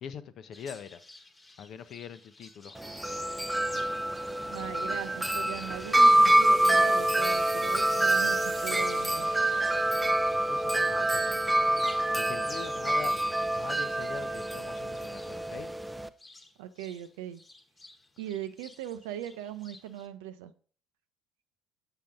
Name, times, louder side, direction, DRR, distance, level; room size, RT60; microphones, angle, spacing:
voice 1, 0.0-1.0 1.6-2.8 10.3-11.4 12.2-13.1 13.5-15.7, left 7 dB, 50° left, 0.7 m, -43 dB
sound 1, 0.5-10.7 11.0-17.1 17.3-20.1, left 2 dB, 25° left, 1.2 m, -49 dB
Wind chime, 2.8-16.1, right 1 dB, 5° right, 0.5 m, -26 dB
voice 2, 4.5-9.3 16.6-17.4 18.2-20.5, right 11 dB, 70° right, 0.6 m, -40 dB
sound 2, 6.0-11.7, right 5 dB, 40° right, 0.9 m, -49 dB
7.3 x 6.8 x 3.8 m
figure-of-eight pair, 50°, 0 cm